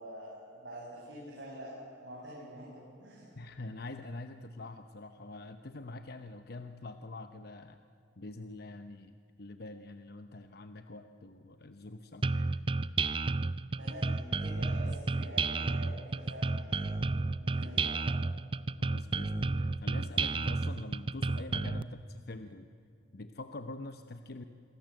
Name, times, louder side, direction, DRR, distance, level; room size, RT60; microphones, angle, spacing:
voice 1, 0.0-3.3 13.8-17.0 17.4-18.1, equal, 80° right, -5 dB, 7.2 m, -46 dB
voice 2, 3.3-7.8 8.2-12.6 18.8-22.7 23.1-24.4, left 2 dB, 60° left, 8 dB, 1.0 m, -45 dB
sound 1, 12.2-21.8, right 3 dB, 30° right, 0.5 m, -31 dB
27.5 x 23.0 x 7.9 m, 2.6 s
head